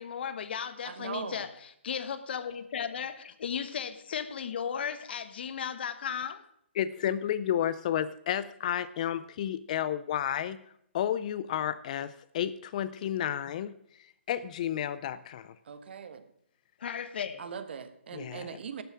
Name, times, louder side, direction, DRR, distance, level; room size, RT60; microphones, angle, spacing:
voice 1, 0.0-6.4 16.8-17.4, left 7 dB, 55° left, 1.1 m, -35 dB
voice 2, 0.8-1.4 15.6-16.2 17.4-18.8, right 6 dB, 60° right, 1.2 m, -40 dB
voice 3, 6.8-10.6 10.9-15.6 18.1-18.6, left 10 dB, 35° left, 0.4 m, -32 dB
11.5 x 6.8 x 7.4 m
hypercardioid pair, 155°, 7 cm